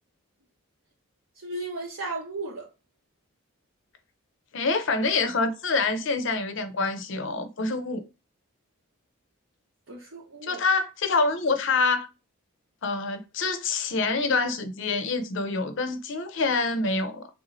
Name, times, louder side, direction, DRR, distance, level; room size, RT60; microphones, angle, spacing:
voice 1, 1.4-2.7 9.9-10.6, right 2 dB, 60° right, 0.7 m, -35 dB
voice 2, 4.5-8.0 10.4-12.1 12.8-17.3, left 3 dB, 55° left, 0.6 m, -26 dB
3.4 x 2.7 x 2.9 m
head